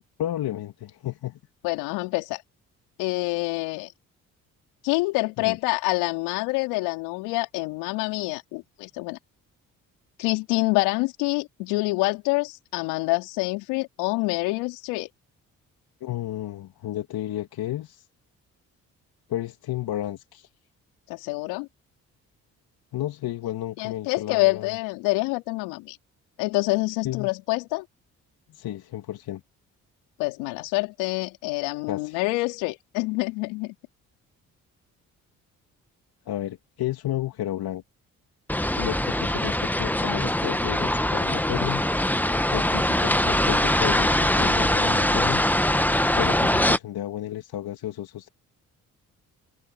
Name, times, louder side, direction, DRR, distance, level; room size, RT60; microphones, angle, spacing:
voice 1, 0.2-1.4 5.4-5.6 16.0-18.1 19.3-20.5 22.9-24.8 27.0-27.3 28.5-29.4 31.9-32.3 36.3-37.8 38.8-41.8 42.5-45.4 46.2-48.3, left 13 dB, 70° left, 3.0 m, -32 dB
voice 2, 1.6-2.4 3.0-3.9 4.8-9.2 10.2-15.1 21.1-21.7 23.8-26.0 26.4-27.8 30.2-33.7, left 24 dB, 85° left, 4.0 m, -26 dB
sound 1, 38.5-46.8, left 1 dB, 5° left, 1.4 m, -22 dB
hypercardioid pair, 50°, 39 cm